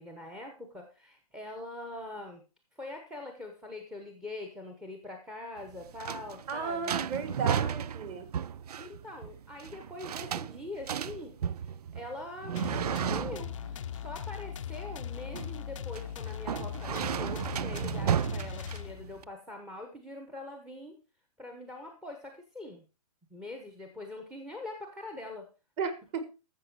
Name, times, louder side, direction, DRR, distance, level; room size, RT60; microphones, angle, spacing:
voice 1, 0.0-2.4 2.7-7.0 8.8-11.3 11.9-12.7 13.0-21.0 21.4-22.9 23.3-25.5, left 2 dB, 5° right, 4 dB, 0.9 m, -43 dB
sound 1, 5.6-19.2, right 9 dB, 85° right, 0.5 m, -34 dB
voice 2, 6.5-8.3 25.8-26.2, right 5 dB, 20° right, 11 dB, 1.3 m, -34 dB
sound 2, 12.6-19.3, left 9 dB, 55° left, 0.6 m, -39 dB
13.0 x 7.3 x 4.6 m, 0.30 s
hypercardioid pair, 165°, 19 cm